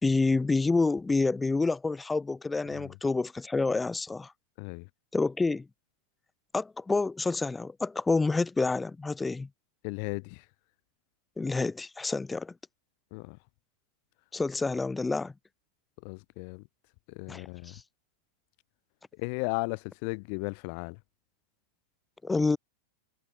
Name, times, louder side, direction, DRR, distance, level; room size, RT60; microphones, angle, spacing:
voice 1, 0.0-4.3 5.1-5.7 6.5-9.5 11.4-12.5 14.3-15.3 17.3-17.8 22.2-22.6, left 3 dB, 10° left, 3.3 m, -28 dB
voice 2, 2.7-3.0 4.6-4.9 9.8-10.5 13.1-13.4 16.0-16.7 17.1-17.8 19.1-21.0, left 40 dB or more, 45° left, 6.0 m, -36 dB
figure-of-eight pair, 90°, 0 cm